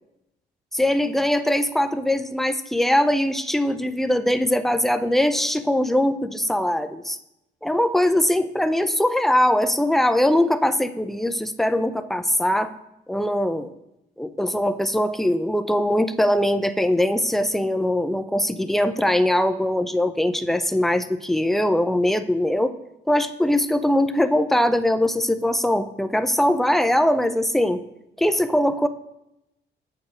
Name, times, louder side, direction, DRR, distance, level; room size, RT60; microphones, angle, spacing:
voice 1, 0.7-7.2 7.6-12.7 13.1-13.7 14.2-22.7 23.1-27.8 28.2-28.9, left 1 dB, ahead, 10 dB, 0.5 m, -21 dB
7.3 x 6.7 x 4.9 m, 0.87 s
cardioid pair, 90°, 20 cm